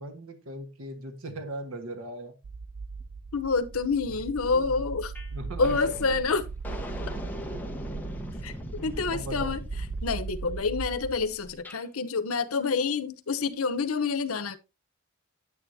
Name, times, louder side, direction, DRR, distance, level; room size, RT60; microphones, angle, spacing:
voice 1, 0.0-2.4 4.1-4.2 4.5-4.7 5.3-6.0 6.3-6.4 7.5-7.6 9.1-9.5, right 1 dB, 80° right, 1.5 m, -39 dB
sound 1, 2.4-11.2, right 4 dB, 50° right, 0.4 m, -38 dB
voice 2, 3.3-5.1 5.6-6.5 8.4-8.5 8.8-9.6 10.0-14.6, left 4 dB, 90° left, 1.0 m, -27 dB
sound 2, 5.1-5.3 5.6-11.8, left 1 dB, 10° left, 1.3 m, -41 dB
9.6 x 9.4 x 2.8 m
head